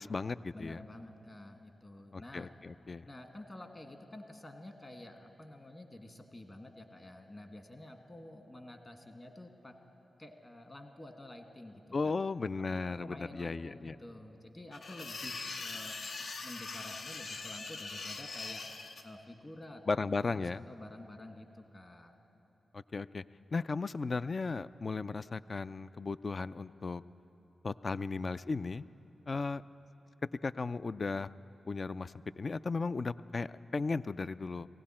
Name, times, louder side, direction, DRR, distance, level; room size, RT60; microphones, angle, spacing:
voice 1, 0.0-0.8 2.1-3.1 11.9-14.0 19.9-20.6 22.7-23.2 23.5-27.0 27.6-28.8 29.3-29.6 30.4-31.3 31.7-34.7, left 4 dB, 50° left, 15 dB, 0.3 m, -35 dB
voice 2, 0.5-2.5 3.0-9.7 10.2-12.1 12.7-18.6 19.0-22.1, left 1 dB, 30° left, 5 dB, 1.6 m, -50 dB
sound 1, 14.7-19.0, left 3 dB, 75° left, 0.7 m, -42 dB
18.5 x 16.0 x 4.3 m, 3.0 s
cardioid pair, 45°, 0 cm